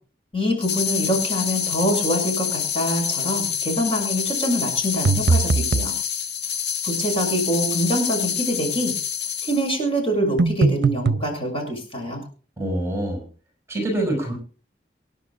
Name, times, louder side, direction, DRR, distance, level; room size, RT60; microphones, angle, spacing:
voice 1, 0.3-5.9 6.8-8.9 9.4-12.2, equal, 35° left, 2 dB, 6.3 m, -25 dB
sound 1, 0.6-9.8, left 8 dB, 75° left, 1.4 m, -27 dB
sound 2, 5.1-6.0 10.4-11.3, right 3 dB, 80° right, 0.6 m, -20 dB
voice 2, 12.6-13.2 13.7-14.3, right 1 dB, 15° right, 1 dB, 6.2 m, -25 dB
27.5 x 10.5 x 2.5 m, 0.40 s
head